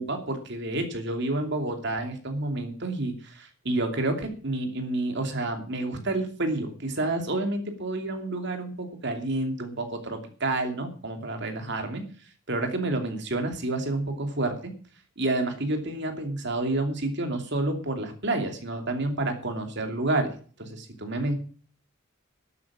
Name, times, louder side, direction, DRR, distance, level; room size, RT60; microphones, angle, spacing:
voice 1, 0.0-12.0 12.5-14.7 15.2-20.3 20.6-21.3, right 2 dB, 55° right, 5 dB, 2.7 m, -29 dB
12.5 x 8.5 x 7.5 m, 0.42 s
head